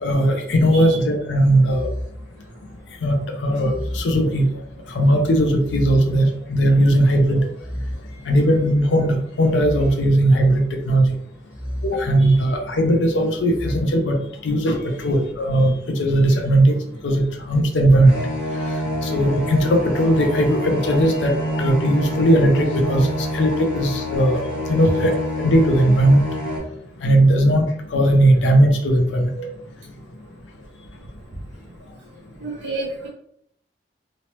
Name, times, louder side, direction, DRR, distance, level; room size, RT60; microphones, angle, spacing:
voice 1, 0.0-1.9 3.0-4.5 4.9-7.5 8.3-11.1 11.8-14.2 14.4-16.8 17.0-18.1 19.0-21.3 21.6-23.1 23.3-24.4 24.7-25.1 25.4-26.2 27.0-29.5, right 1 dB, 85° left, 3 dB, 0.5 m, -18 dB
sound 1, 1.7-3.0 3.6-4.9 5.6-6.9 7.6-8.9 9.6-10.9 11.5-12.8 13.5-13.8, equal, 5° right, 0.4 m, -33 dB
sound 2, 18.0-26.6, left 1 dB, 50° left, 0.7 m, -27 dB
voice 2, 32.4-33.1, right 2 dB, 80° right, -4 dB, 0.5 m, -30 dB
3.1 x 2.1 x 2.8 m, 0.72 s
head